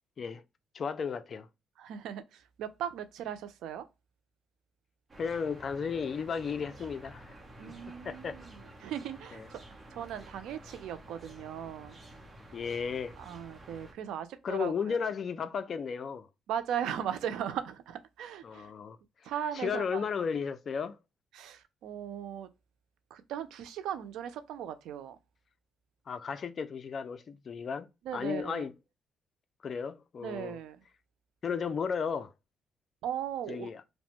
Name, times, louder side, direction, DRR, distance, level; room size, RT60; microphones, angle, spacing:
voice 1, 0.7-1.5 5.2-7.3 8.0-8.4 12.5-13.2 14.4-16.3 18.4-19.0 19.6-21.0 26.1-27.9 28.1-28.7 29.6-30.6 31.4-32.3 33.5-33.8, left 6 dB, 50° left, 0.4 m, -34 dB
voice 2, 1.8-3.9 7.6-9.6 9.9-12.0 13.2-15.1 16.5-18.7 19.2-20.1 21.3-22.5 23.1-25.2 28.0-28.7 30.2-30.8 33.0-33.7, right 9 dB, 85° right, 0.4 m, -38 dB
sound 1, 5.1-13.9, right 1 dB, 30° right, 0.8 m, -51 dB
2.9 x 2.1 x 2.9 m
cardioid pair, 90°, 0 cm